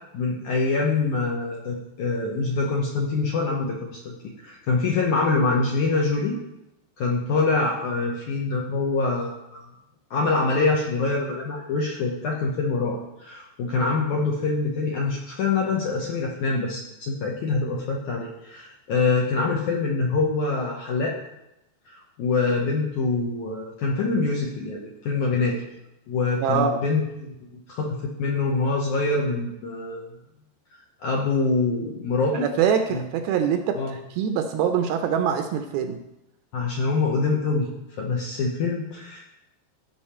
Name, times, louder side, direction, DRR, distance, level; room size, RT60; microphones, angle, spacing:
voice 1, 0.1-6.4 7.0-9.7 10.1-21.2 21.9-25.6 26.1-30.1 31.0-32.5 32.9-33.0 33.7-34.0 36.5-37.7 38.0-39.3, left 3 dB, 75° left, -1 dB, 1.8 m, -25 dB
voice 2, 26.4-26.8 32.3-36.0, right 7 dB, 80° right, 7 dB, 2.3 m, -24 dB
15.0 x 5.5 x 4.3 m, 0.88 s
omnidirectional pair, 4.8 m